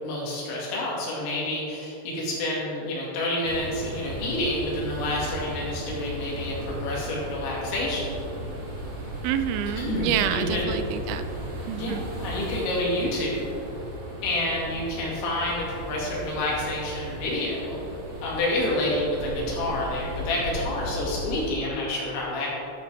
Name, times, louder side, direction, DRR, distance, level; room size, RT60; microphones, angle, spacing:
voice 1, 0.0-8.2 9.8-10.7 11.7-13.5 14.2-17.8 18.2-22.6, left 1 dB, 75° left, -4 dB, 4.3 m, -28 dB
sound 1, 3.4-21.5, equal, 45° right, 2.2 m, -36 dB
voice 2, 9.2-11.3 11.7-12.1, right 10 dB, 85° right, 10 dB, 2.8 m, -28 dB
12.0 x 8.4 x 3.4 m, 2.8 s
omnidirectional pair, 5.3 m